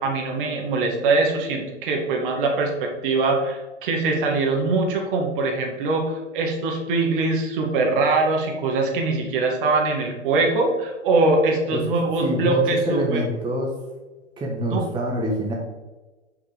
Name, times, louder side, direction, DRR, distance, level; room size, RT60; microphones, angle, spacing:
voice 1, 0.0-13.2 14.7-14.9, right 3 dB, 45° right, 1 dB, 1.8 m, -22 dB
voice 2, 12.2-13.7 14.4-15.5, equal, 15° right, -2 dB, 1.3 m, -25 dB
5.8 x 5.8 x 5.0 m, 1.2 s
figure-of-eight pair, 110°, 36 cm